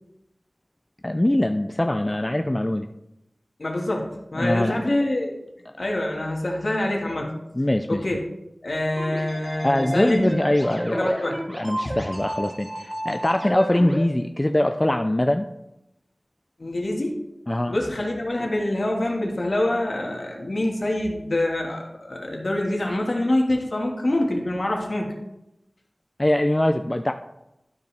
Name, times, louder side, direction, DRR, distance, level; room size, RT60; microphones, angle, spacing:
voice 1, 1.0-2.9 4.3-4.9 7.6-8.0 9.6-11.1 11.5-15.5 17.5-17.8 26.2-27.1, left 1 dB, 25° left, 7 dB, 0.4 m, -22 dB
voice 2, 3.6-5.4 5.8-7.3 7.9-8.2 8.6-10.3 10.9-11.4 16.6-17.2 17.7-25.1, left 1 dB, 65° left, 0 dB, 1.7 m, -25 dB
sound 1, 9.0-14.0, equal, 30° right, 1.9 m, -32 dB
12.0 x 5.4 x 3.4 m, 0.88 s
wide cardioid pair, 55°, 0 cm